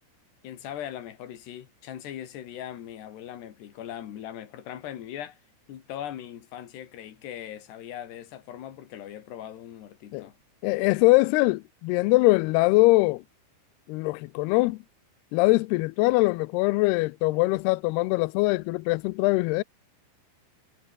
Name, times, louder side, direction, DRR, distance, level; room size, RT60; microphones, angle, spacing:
voice 1, 0.4-5.4 5.7-10.4, left 11 dB, 65° left, 4.2 m, -40 dB
voice 2, 10.6-13.2 13.9-14.8 15.3-19.6, left 22 dB, 90° left, 2.3 m, -22 dB
omnidirectional pair, 5.4 m